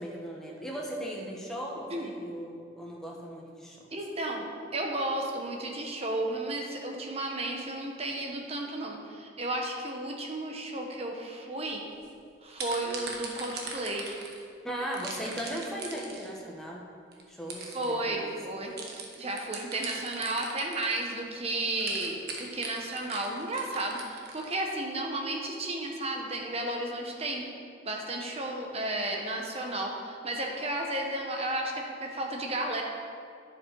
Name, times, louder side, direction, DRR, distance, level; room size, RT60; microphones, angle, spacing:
voice 1, 0.0-3.9 14.6-16.9 17.3-18.3, equal, 5° left, -3 dB, 1.4 m, -38 dB
voice 2, 3.9-11.8 12.4-14.1 17.6-18.7 19.1-27.4 27.8-32.8, right 1 dB, 35° right, 1 dB, 1.2 m, -33 dB
sound 1, 11.9-12.1 12.5-14.4 14.9-16.4 17.1-17.2 17.5-17.9 18.8-21.2 21.8-24.6, right 4 dB, 60° right, 1.3 m, -40 dB
10.5 x 7.3 x 4.7 m, 2.3 s
head